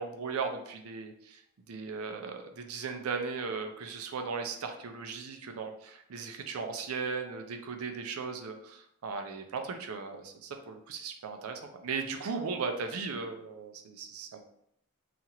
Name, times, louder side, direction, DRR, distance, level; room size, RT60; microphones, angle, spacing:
voice 1, 0.0-1.4 1.7-14.4, right 5 dB, 75° right, 5 dB, 0.4 m, -37 dB
2.9 x 2.4 x 2.8 m, 0.74 s
head